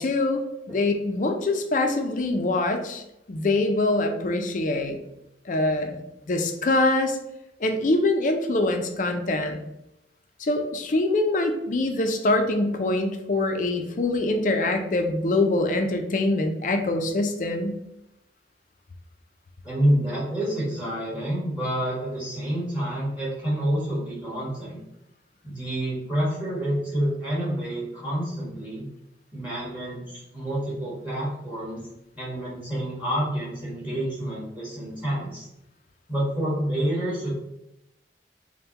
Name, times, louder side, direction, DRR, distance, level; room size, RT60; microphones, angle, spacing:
voice 1, 0.0-3.0 3.3-5.0 5.5-6.0 6.3-7.2 7.6-9.6 10.4-17.8, left 2 dB, 45° left, 5 dB, 0.5 m, -24 dB
voice 2, 19.6-24.8 25.4-28.9 29.3-31.8 32.1-35.5 36.1-37.3, right 1 dB, 10° right, -6 dB, 1.3 m, -28 dB
5.4 x 2.2 x 2.9 m, 0.87 s
head